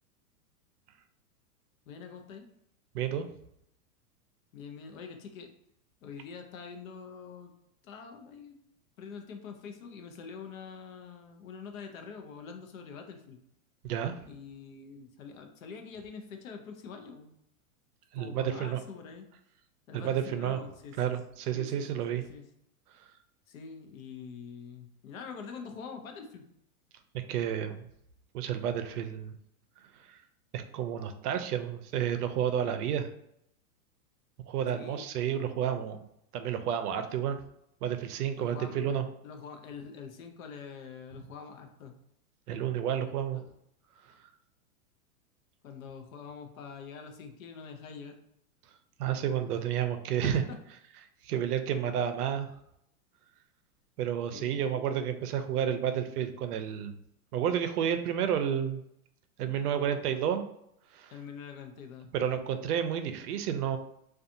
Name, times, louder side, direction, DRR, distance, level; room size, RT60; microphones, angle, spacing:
voice 1, 1.9-2.4 4.5-5.5 6.0-7.5 7.8-8.6 9.0-13.4 14.2-17.3 18.2-19.2 19.9-21.2 21.5-22.5 23.5-26.5 34.7-35.0 38.4-38.8 39.2-41.9 43.3-43.4 45.6-48.1 50.2-50.6 54.3-54.6 61.1-62.1, left 6 dB, 60° left, 4 dB, 0.6 m, -45 dB
voice 2, 2.9-3.3 13.8-14.1 18.1-18.8 19.9-20.6 21.0-22.2 27.3-27.8 28.3-29.3 30.1-30.2 30.5-33.1 34.5-36.0 36.3-37.4 37.8-39.1 42.5-43.4 49.0-50.4 51.2-52.5 54.0-56.9 57.3-58.8 59.4-60.4 60.9-61.1 62.1-63.8, right 9 dB, 80° right, 8 dB, 0.5 m, -30 dB
2.6 x 2.3 x 2.5 m, 0.76 s
supercardioid pair, 165°, 45 cm